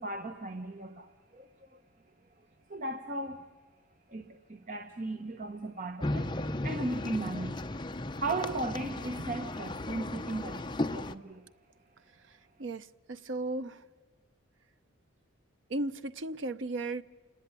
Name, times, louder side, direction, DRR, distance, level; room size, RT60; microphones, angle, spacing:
voice 1, 0.0-1.8 2.7-3.4 4.1-7.7 8.2-11.5, right 2 dB, 40° right, 1.1 m, -37 dB
sound 1, 6.0-11.1, left 2 dB, 20° left, 0.7 m, -35 dB
voice 2, 12.6-13.8 15.7-17.0, right 2 dB, 65° right, 0.8 m, -35 dB
27.0 x 19.0 x 9.7 m
head